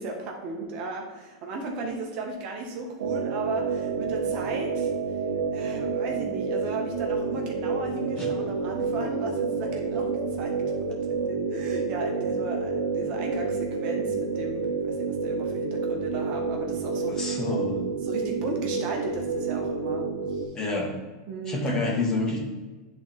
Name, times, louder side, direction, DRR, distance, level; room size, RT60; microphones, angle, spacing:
voice 1, 0.0-4.9 5.5-10.5 10.9-17.4 18.0-20.4 21.3-21.6, right 3 dB, 45° right, 1 dB, 1.5 m, -35 dB
sound 1, 3.0-20.5, right 4 dB, 75° right, 0.9 m, -29 dB
voice 2, 17.1-17.8 20.5-20.9 21.5-22.4, left 2 dB, 25° left, -1 dB, 1.9 m, -28 dB
9.8 x 4.0 x 3.5 m, 1.2 s
supercardioid pair, 135°, 3 cm